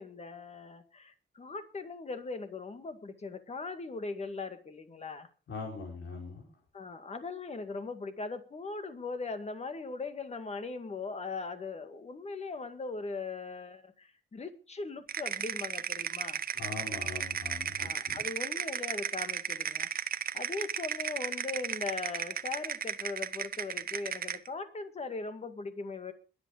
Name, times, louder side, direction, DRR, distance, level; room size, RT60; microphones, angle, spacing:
voice 1, 0.0-5.3 6.7-16.4 17.8-19.9 20.3-26.1, left 3 dB, 35° left, 8 dB, 2.0 m, -39 dB
voice 2, 5.5-6.4 16.5-18.2, left 4 dB, 85° left, -1 dB, 4.9 m, -41 dB
sound 1, 15.1-24.5, right 8 dB, 50° right, 0.9 m, -35 dB
21.5 x 8.4 x 5.1 m, 0.36 s
wide cardioid pair, 145°, 19 cm